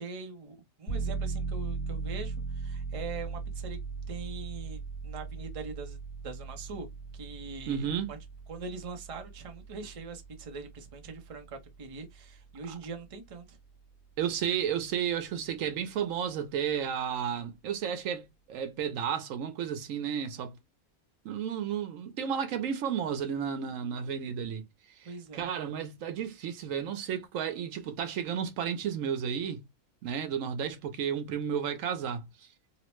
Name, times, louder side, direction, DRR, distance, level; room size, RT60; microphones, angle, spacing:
voice 1, 0.0-3.8 4.1-6.0 6.2-6.9 7.1-8.2 8.5-13.6 25.0-25.5, right 4 dB, 35° right, 0.6 m, -42 dB
sound 1, 0.9-13.4 13.7-13.8, right 4 dB, 55° left, 1.3 m, -38 dB
voice 2, 7.7-8.1 14.2-20.6 21.2-24.7 25.0-29.6 30.0-32.5, right 8 dB, 80° right, 1.0 m, -32 dB
3.0 x 2.1 x 3.0 m
omnidirectional pair, 1.4 m